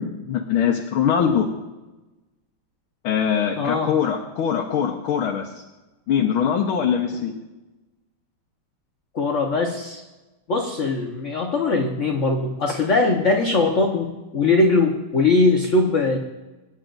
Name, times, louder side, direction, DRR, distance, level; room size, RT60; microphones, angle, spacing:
voice 1, 0.0-1.5 3.0-5.6 6.1-7.3, left 8 dB, 85° left, -2 dB, 1.9 m, -22 dB
voice 2, 3.6-3.9 9.1-10.0 10.5-16.2, left 3 dB, 45° left, 0 dB, 1.2 m, -21 dB
25.5 x 10.5 x 2.6 m, 1.1 s
omnidirectional pair, 2.3 m